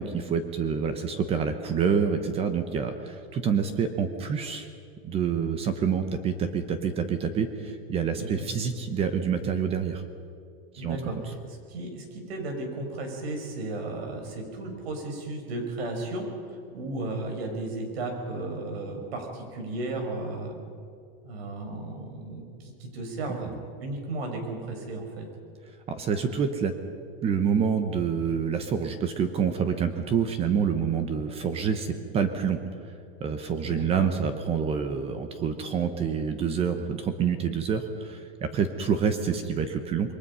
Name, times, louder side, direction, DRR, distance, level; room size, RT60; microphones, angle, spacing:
voice 1, 0.0-4.7 5.0-10.0 10.7-11.0 23.3-23.6 25.9-26.7 27.2-32.6 32.9-33.0 33.2-40.1, right 6 dB, 20° right, 8 dB, 1.0 m, -27 dB
voice 2, 8.2-8.5 10.8-11.2 11.5-20.5 21.2-23.5 23.8-25.3 33.6-34.1, right 2 dB, 85° right, 3 dB, 6.4 m, -34 dB
27.5 x 22.0 x 5.6 m, 2.3 s
supercardioid pair, 165°, 30 cm